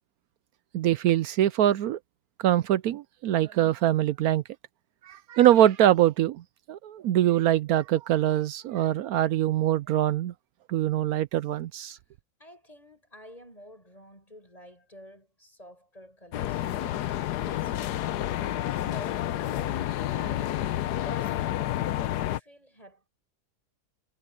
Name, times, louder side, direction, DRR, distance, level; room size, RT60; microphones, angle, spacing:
voice 1, 0.7-2.0 2.4-4.4 5.0-10.3 10.7-12.0, right 12 dB, 70° right, 1.0 m, -23 dB
voice 2, 12.4-17.1 17.5-21.4 21.7-23.1, equal, 20° left, 8.2 m, -49 dB
sound 1, 16.3-22.4, left 13 dB, 80° left, 1.2 m, -30 dB
omnidirectional pair, 1.8 m